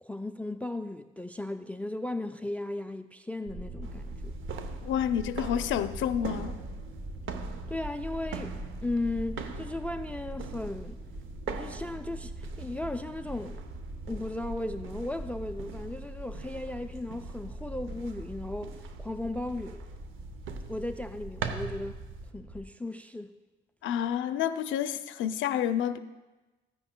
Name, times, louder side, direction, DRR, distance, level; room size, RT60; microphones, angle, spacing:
voice 1, 0.0-4.3 7.7-11.0 11.6-13.6 14.1-19.8 20.7-22.0 22.3-23.3, left 2 dB, 5° left, 0.3 m, -36 dB
sound 1, 3.5-22.6, right 1 dB, 60° right, 1.4 m, -42 dB
sound 2, 3.8-22.3, right 5 dB, 80° right, 0.7 m, -43 dB
voice 2, 4.8-6.6 23.8-26.0, left 10 dB, 75° left, 0.5 m, -29 dB
14.0 x 9.8 x 2.2 m
cardioid pair, 90°, 20 cm